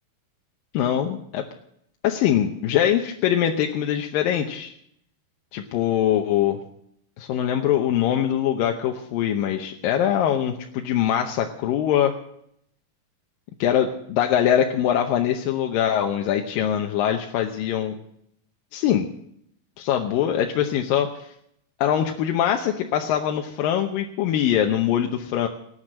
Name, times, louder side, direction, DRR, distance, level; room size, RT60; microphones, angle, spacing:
voice 1, 0.7-1.4 2.0-4.7 5.5-6.6 7.2-12.1 13.6-18.0 18.7-19.1 19.8-21.3 21.8-25.5, left 10 dB, 75° left, 3 dB, 2.5 m, -23 dB
18.5 x 8.3 x 7.6 m, 0.71 s
omnidirectional pair, 4.4 m